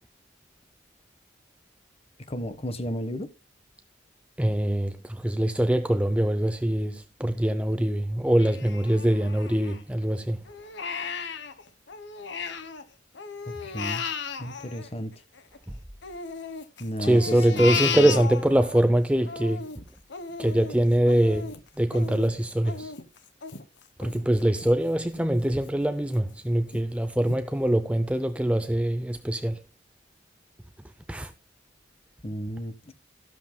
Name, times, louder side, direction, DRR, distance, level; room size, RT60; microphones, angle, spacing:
voice 1, 2.3-3.3 13.5-14.1 14.4-15.1 16.8-18.2 32.2-32.9, equal, 30° left, 1.2 m, -33 dB
voice 2, 4.4-10.4 15.7-15.8 17.0-19.7 20.4-22.9 24.0-29.6 31.1-31.3, right 1 dB, 5° right, 0.5 m, -23 dB
Crying sobbing, 8.4-10.0 10.5-12.8 13.1-15.6 16.0-18.8 19.2-24.7 25.1-25.2 25.7-26.2 26.7-26.8 27.3-27.4, left 6 dB, 60° left, 1.2 m, -35 dB
14.0 x 13.0 x 2.2 m
head